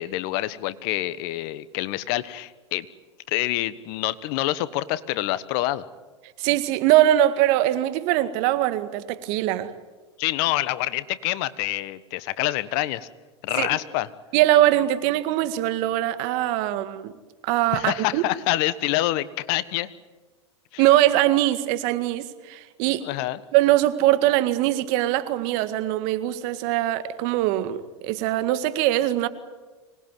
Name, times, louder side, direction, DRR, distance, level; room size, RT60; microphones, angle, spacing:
voice 1, 0.0-2.9 3.3-5.8 10.2-13.1 13.4-14.1 17.7-19.9 20.7-20.8 23.0-23.4, left 16 dB, 55° left, 1.3 m, -26 dB
voice 2, 6.4-9.7 13.6-13.8 14.3-17.1 17.4-18.2 20.8-23.0 23.5-27.8 28.0-29.3, right 14 dB, 55° right, 2.0 m, -22 dB
25.0 x 20.0 x 9.3 m
hypercardioid pair, 100°, 15 cm